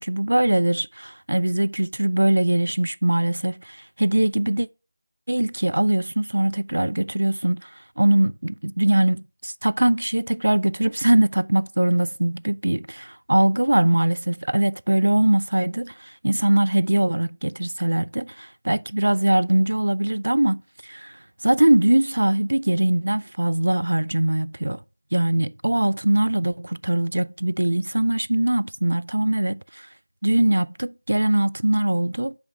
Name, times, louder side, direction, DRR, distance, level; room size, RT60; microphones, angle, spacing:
voice 1, 0.0-4.7 5.3-7.7 8.0-24.8 25.1-29.9 30.2-32.3, right 1 dB, 85° right, 0.3 m, -22 dB
6.2 x 5.2 x 4.7 m
figure-of-eight pair, 175°, 0 cm